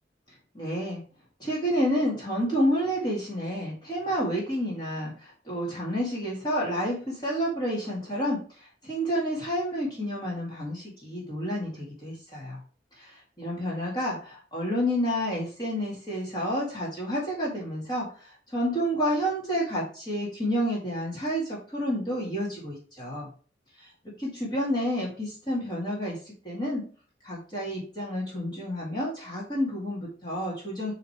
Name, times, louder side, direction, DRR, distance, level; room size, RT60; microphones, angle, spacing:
voice 1, 0.3-1.0 1.4-12.6 12.9-23.3 23.8-23.9 24.2-26.8 27.2-30.9, equal, 25° left, -5 dB, 2.2 m, -30 dB
8.9 x 3.2 x 4.6 m, 0.41 s
head